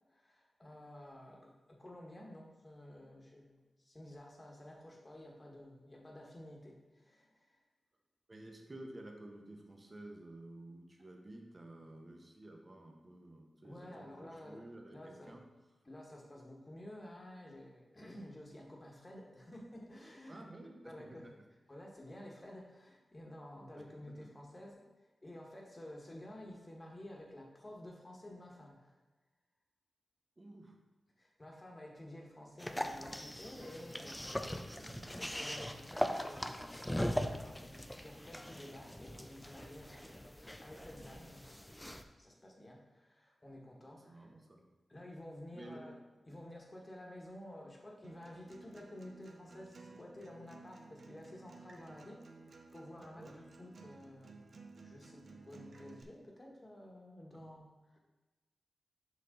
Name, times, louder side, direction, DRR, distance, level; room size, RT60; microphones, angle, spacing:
voice 1, 0.1-7.6 13.6-14.6 14.9-15.4 15.9-20.4 20.8-21.3 21.7-29.0 31.2-34.8 35.2-36.9 37.2-44.3 44.9-46.0 46.3-54.5 54.8-58.0, left 1 dB, 25° left, -1 dB, 1.4 m, -52 dB
voice 2, 8.3-15.5 20.3-21.3 23.8-23.9 30.4-30.8 34.6-35.1 43.9-44.7 45.5-45.9 53.0-53.3 57.3-57.4, right 1 dB, 30° right, 2 dB, 1.1 m, -52 dB
sound 1, 32.6-42.0, equal, 10° left, 0.4 m, -40 dB
Acoustic guitar, 48.0-56.0, right 3 dB, 60° right, 0.7 m, -56 dB
6.4 x 5.4 x 3.8 m, 1.2 s
wide cardioid pair, 80°, 0 cm